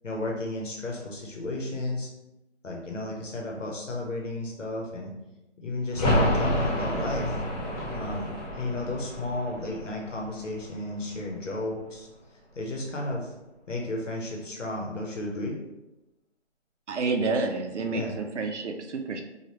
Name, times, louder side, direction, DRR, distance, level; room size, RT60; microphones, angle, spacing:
voice 1, 0.0-2.1 2.6-5.1 5.6-7.4 7.9-8.3 8.6-12.1 12.5-13.3 13.7-15.6 17.9-18.2, left 2 dB, 85° left, -1 dB, 0.9 m, -33 dB
sound 1, 5.9-11.5 11.7-11.8, equal, 30° left, 0.9 m, -29 dB
voice 2, 16.9-19.2, right 3 dB, 70° right, 5 dB, 0.6 m, -29 dB
2.8 x 2.4 x 3.0 m, 0.97 s
figure-of-eight pair, 165°, 36 cm